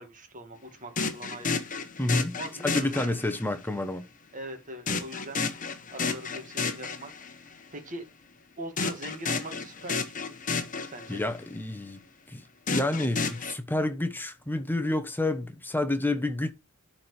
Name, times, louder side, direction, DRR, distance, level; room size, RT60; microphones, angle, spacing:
voice 1, 0.0-1.6 2.4-3.2 4.3-7.1 7.7-8.1 8.6-10.4 10.9-11.2, right 1 dB, 35° right, 2.0 m, -41 dB
sound 1, 1.0-3.6 4.9-7.5 8.8-11.4 12.7-13.5, left 4 dB, 35° left, 1.1 m, -32 dB
voice 2, 2.0-2.4 2.6-4.1 11.1-12.0 12.3-12.4 12.7-16.5, left 1 dB, 10° left, 1.0 m, -29 dB
11.5 x 4.5 x 3.3 m
head